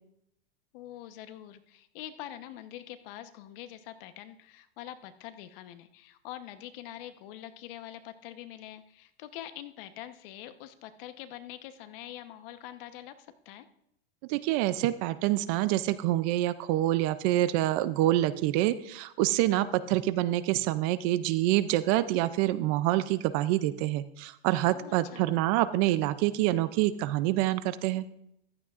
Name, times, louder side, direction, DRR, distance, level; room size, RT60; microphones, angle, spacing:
voice 1, 0.7-13.7 24.7-25.3, left 12 dB, 55° left, 10 dB, 1.0 m, -45 dB
voice 2, 14.3-28.1, right 15 dB, 35° right, 15 dB, 0.4 m, -26 dB
15.0 x 12.0 x 2.5 m, 0.78 s
supercardioid pair, 140°, 34 cm